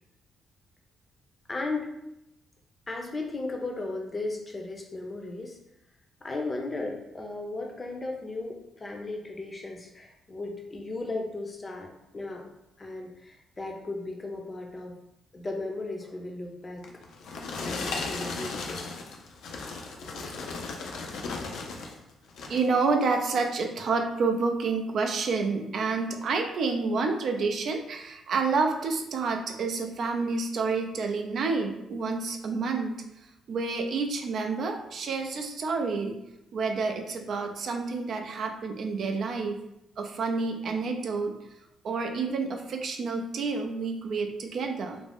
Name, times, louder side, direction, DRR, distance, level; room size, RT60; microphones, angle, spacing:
voice 1, 1.5-1.9 2.9-5.6 6.2-12.5 12.8-14.9 15.3-16.8 17.6-18.8 19.6-19.7 20.0-20.2, left 2 dB, 25° left, 1 dB, 0.5 m, -36 dB
sound 1, 16.8-22.0 22.3-22.7 23.3-23.4, left 3 dB, 75° left, 0.4 m, -36 dB
voice 2, 22.5-33.0 33.5-36.2 36.5-39.6 40.0-41.4 41.8-45.0, right 4 dB, 60° right, 4 dB, 0.3 m, -29 dB
2.5 x 2.0 x 3.4 m, 0.85 s
cardioid pair, 90°, 0 cm